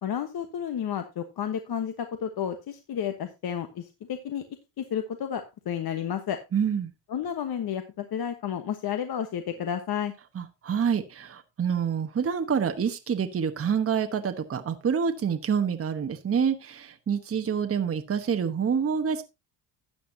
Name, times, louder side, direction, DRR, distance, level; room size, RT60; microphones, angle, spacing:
voice 1, 0.0-4.4 4.8-6.4 7.1-10.1, left 9 dB, 45° left, 7 dB, 1.2 m, -31 dB
voice 2, 6.5-6.9 10.3-19.2, right 7 dB, 30° right, 7 dB, 1.1 m, -27 dB
13.0 x 8.5 x 2.7 m, 0.25 s
cardioid pair, 105°, 50 cm